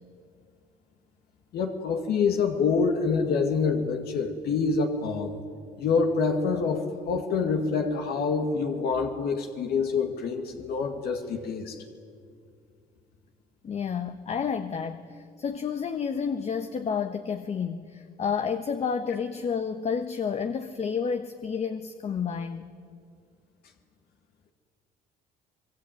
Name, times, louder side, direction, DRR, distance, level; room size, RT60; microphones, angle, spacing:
voice 1, 1.5-5.4 5.8-11.8, left 5 dB, 70° left, 4 dB, 2.2 m, -26 dB
voice 2, 13.6-22.7, left 6 dB, 40° left, 8 dB, 1.2 m, -30 dB
25.5 x 22.0 x 9.2 m, 2.3 s
cardioid pair, 110°, 17 cm